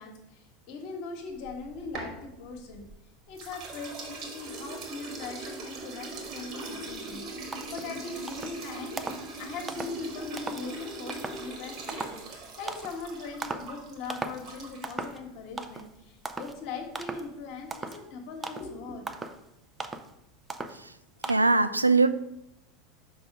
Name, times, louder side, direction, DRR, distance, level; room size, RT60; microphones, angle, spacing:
voice 1, 0.0-2.9 3.3-9.0 9.4-19.0, left 4 dB, 50° left, 3 dB, 1.3 m, -40 dB
sound 1, 1.4-3.0 3.4-15.1, right 2 dB, 45° right, 1.8 m, -41 dB
sound 2, 7.1-7.2 7.5-7.9 8.3-8.6 9.0-9.3 9.7-10.0 10.4-10.7 11.1-11.4 11.9-12.2 12.7-13.0 13.4-13.7 14.1-14.5 14.8-15.2 15.6-15.9 16.3-16.6 17.0-17.3 17.7-18.0 18.4-18.7 19.1-19.4 19.8-20.1 20.5-20.8 21.2-21.4, right 3 dB, 15° right, 0.5 m, -37 dB
voice 2, 21.3-22.1, right 3 dB, 85° right, 12 dB, 0.3 m, -21 dB
5.5 x 3.9 x 5.8 m, 0.84 s
figure-of-eight pair, 80°, 0 cm